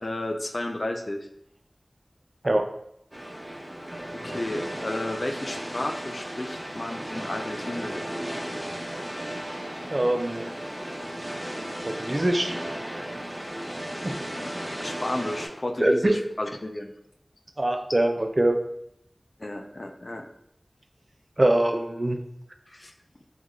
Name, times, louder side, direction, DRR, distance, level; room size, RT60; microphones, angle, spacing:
voice 1, 0.0-1.3 4.1-8.0 14.3-16.9 19.4-20.3 22.7-22.9, left 1 dB, 55° left, 4 dB, 0.3 m, -33 dB
sound 1, 3.1-15.5, equal, 15° right, 0.8 m, -35 dB
voice 2, 9.9-10.5 11.9-12.5 14.0-14.1 15.8-16.2 17.6-18.6 21.4-22.2, right 1 dB, 45° right, 6 dB, 0.3 m, -23 dB
3.6 x 2.2 x 3.1 m, 0.75 s
wide cardioid pair, 45°, 0 cm